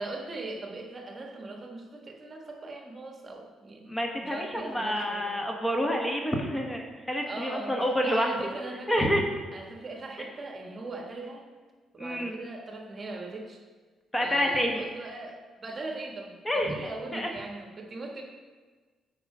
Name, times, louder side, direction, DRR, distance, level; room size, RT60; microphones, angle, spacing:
voice 1, 0.0-5.4 7.2-9.1 9.5-11.5 11.9-13.6 14.2-18.2, right 2 dB, 35° right, 2 dB, 1.4 m, -40 dB
voice 2, 3.9-8.3 8.9-9.2 12.0-12.4 14.1-14.8 16.4-16.7 17.1-17.3, equal, 10° left, 1 dB, 1.1 m, -28 dB
9.0 x 4.8 x 4.9 m, 1.4 s
cardioid pair, 90°, 0 cm